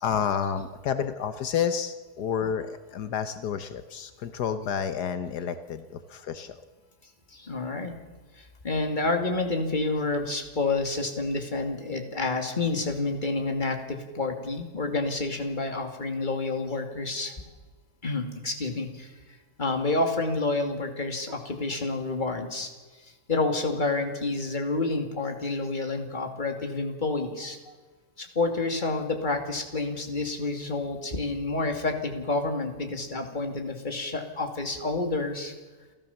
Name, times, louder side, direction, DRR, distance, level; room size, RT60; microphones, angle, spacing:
voice 1, 0.0-6.5, left 7 dB, 80° left, 11 dB, 1.6 m, -30 dB
voice 2, 7.3-7.9 8.4-17.3 18.0-19.1 19.6-22.7 23.3-27.7 28.2-35.5, left 3 dB, 30° left, 5 dB, 2.6 m, -29 dB
29.0 x 14.0 x 7.2 m, 1.3 s
omnidirectional pair, 1.7 m